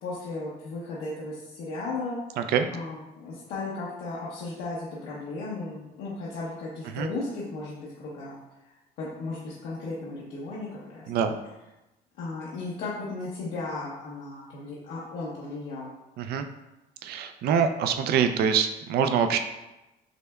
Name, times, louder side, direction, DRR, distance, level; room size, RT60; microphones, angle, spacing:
voice 1, 0.0-2.2 2.7-8.4 9.0-11.1 12.2-15.9, left 3 dB, 80° left, -7 dB, 0.8 m, -35 dB
voice 2, 2.4-2.7 6.9-7.1 11.1-11.3 16.2-16.4 17.0-19.4, right 7 dB, 60° right, 8 dB, 0.4 m, -24 dB
6.3 x 2.2 x 2.2 m, 0.99 s
cardioid pair, 105°, 18 cm